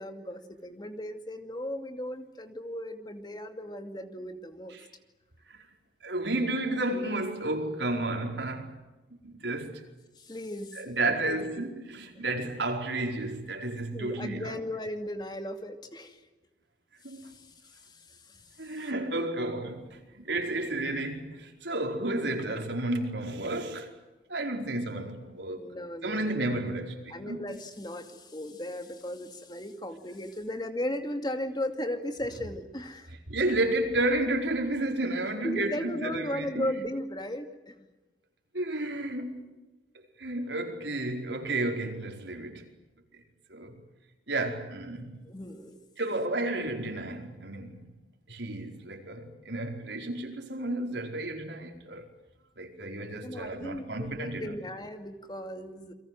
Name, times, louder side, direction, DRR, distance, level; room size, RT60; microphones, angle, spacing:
voice 1, 0.0-4.8 10.2-11.6 13.9-16.2 17.2-17.5 17.9-18.4 25.5-26.5 27.1-33.1 35.4-37.7 45.3-45.8 53.0-55.9, left 1 dB, 25° left, 2.3 m, -36 dB
voice 2, 6.0-8.8 9.2-9.8 10.7-14.6 17.0-17.4 18.6-23.9 24.3-25.6 26.0-27.4 33.3-36.8 38.5-39.6 40.2-42.7 43.5-43.8 44.3-45.2 46.0-47.8 48.3-52.0 52.6-54.6, right 2 dB, 85° right, 4.8 m, -32 dB
29.5 x 23.0 x 7.7 m
head